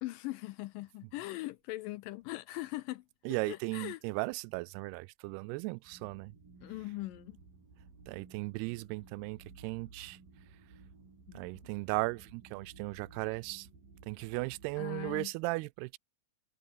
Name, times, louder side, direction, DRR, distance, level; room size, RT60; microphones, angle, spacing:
voice 1, 0.0-3.0 3.5-4.0 6.6-7.4 11.3-11.5 14.8-15.3, left 18 dB, 80° left, 2.0 m, -40 dB
voice 2, 3.3-6.3 8.1-10.2 11.3-13.7 14.1-16.0, right 24 dB, 85° right, 2.6 m, -36 dB
sound 1, 5.8-15.3, right 4 dB, 60° right, 9.4 m, -56 dB
omnidirectional pair, 4.6 m